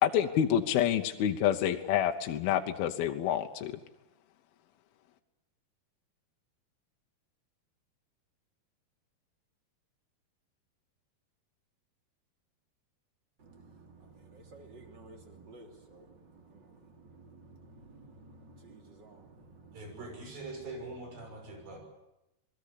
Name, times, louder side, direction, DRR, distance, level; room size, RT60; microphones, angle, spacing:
voice 1, 0.0-3.7, left 10 dB, 70° left, 5 dB, 2.7 m, -28 dB
voice 2, 13.4-20.3 20.8-20.9 21.3-21.7, right 3 dB, 30° right, 4 dB, 3.1 m, -54 dB
voice 3, 19.7-21.8, right 2 dB, 60° right, 3 dB, 8.1 m, -43 dB
27.5 x 20.0 x 8.5 m, 0.89 s
omnidirectional pair, 4.8 m